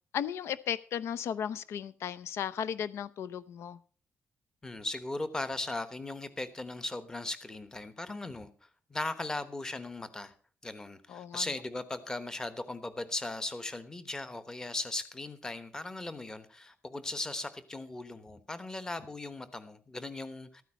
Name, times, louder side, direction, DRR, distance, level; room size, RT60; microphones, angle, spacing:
voice 1, 0.1-3.8 11.1-11.4, left 9 dB, 90° left, 15 dB, 0.6 m, -35 dB
voice 2, 4.6-8.5 8.9-10.3 10.6-20.6, left 2 dB, 15° left, 12 dB, 1.0 m, -38 dB
13.5 x 9.3 x 5.3 m, 0.40 s
wide cardioid pair, 175°, 4 cm